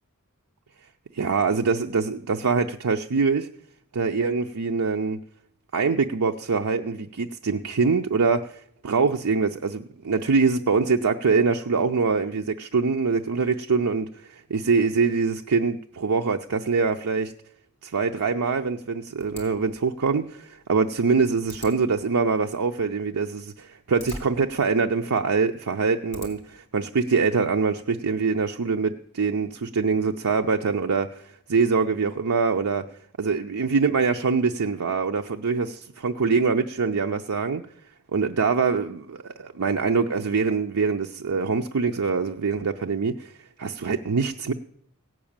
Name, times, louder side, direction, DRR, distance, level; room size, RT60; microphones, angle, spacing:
voice 1, 1.1-3.5 3.9-5.2 5.7-17.3 17.8-31.2 31.5-32.9 33.2-37.6 38.1-43.3 43.6-44.5, right 4 dB, 90° right, 0.6 m, -24 dB
sound 1, 19.2-26.6, left 1 dB, 30° left, 3.3 m, -46 dB
17.0 x 6.2 x 8.7 m
head